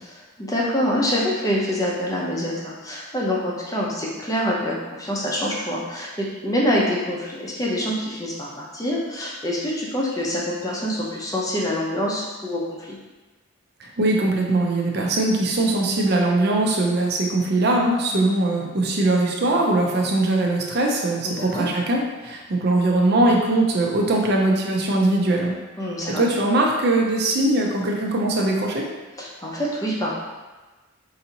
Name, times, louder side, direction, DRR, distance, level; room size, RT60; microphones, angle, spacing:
voice 1, 0.0-13.0 21.2-21.7 25.8-26.2 29.2-30.1, equal, 15° left, -4 dB, 0.6 m, -26 dB
voice 2, 13.8-25.5 26.1-28.8, right 2 dB, 50° right, 0 dB, 0.6 m, -21 dB
4.8 x 2.7 x 2.8 m, 1.2 s
head